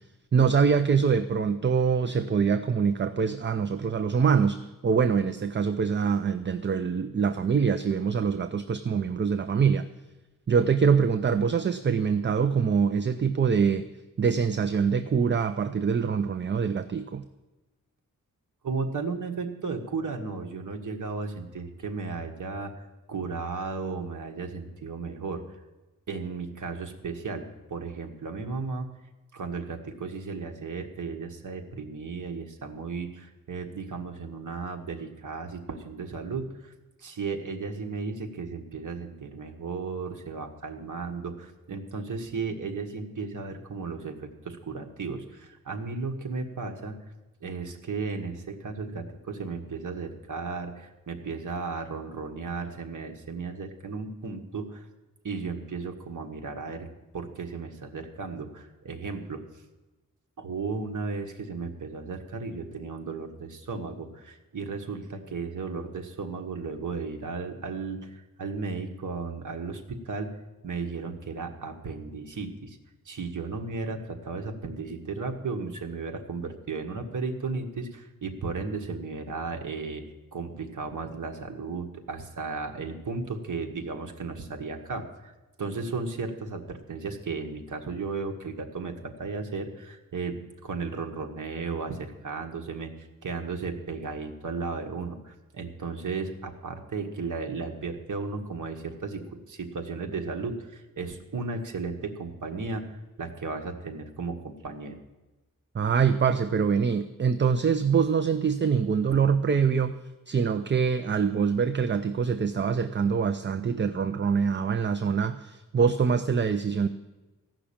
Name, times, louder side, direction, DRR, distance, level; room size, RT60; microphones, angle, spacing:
voice 1, 0.3-9.9 10.5-13.9 14.2-17.2 105.7-110.0 110.3-116.9, right 6 dB, 35° right, 10 dB, 0.5 m, -24 dB
voice 2, 18.6-25.4 26.1-28.9 29.3-36.7 37.0-47.0 47.4-54.8 55.2-56.9 57.1-59.4 60.4-70.3 70.6-72.8 73.0-80.0 80.3-85.3 85.6-102.8 103.2-105.0, right 4 dB, 65° right, 4 dB, 1.5 m, -35 dB
15.0 x 6.0 x 8.6 m, 1.1 s
wide cardioid pair, 130°, 33 cm